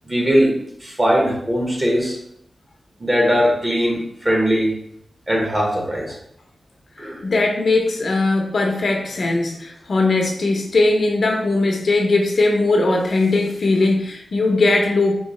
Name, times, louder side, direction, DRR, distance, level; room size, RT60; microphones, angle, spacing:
voice 1, 0.1-0.5 0.8-2.2 3.0-4.7 5.3-6.2 7.0-7.2, equal, 25° right, -2 dB, 1.3 m, -19 dB
voice 2, 7.2-15.2, left 2 dB, 60° left, 1 dB, 0.7 m, -19 dB
4.5 x 3.0 x 3.2 m, 0.70 s
wide cardioid pair, 115°, 0 cm